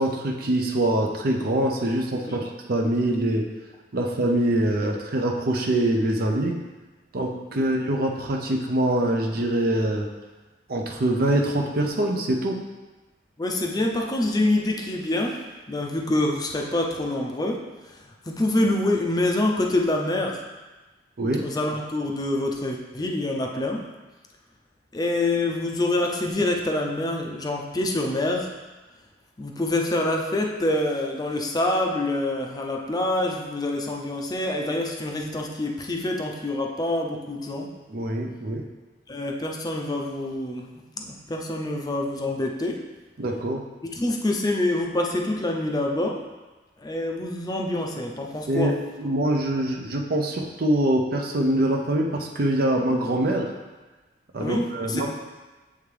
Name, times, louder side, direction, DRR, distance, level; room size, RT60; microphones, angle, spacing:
voice 1, 0.0-3.5 3.9-6.6 7.1-10.1 10.7-12.6 21.2-21.5 37.9-38.6 43.2-43.6 48.5-53.5 54.3-55.1, right 1 dB, 55° right, 1 dB, 0.6 m, -24 dB
voice 2, 13.4-15.4 15.7-17.6 17.9-18.0 18.3-20.4 21.4-23.8 24.9-28.5 29.4-37.7 39.1-40.7 41.0-42.8 43.9-46.2 46.8-48.7 54.4-55.1, left 1 dB, 20° left, 0 dB, 0.5 m, -26 dB
8.5 x 3.5 x 3.3 m, 1.2 s
head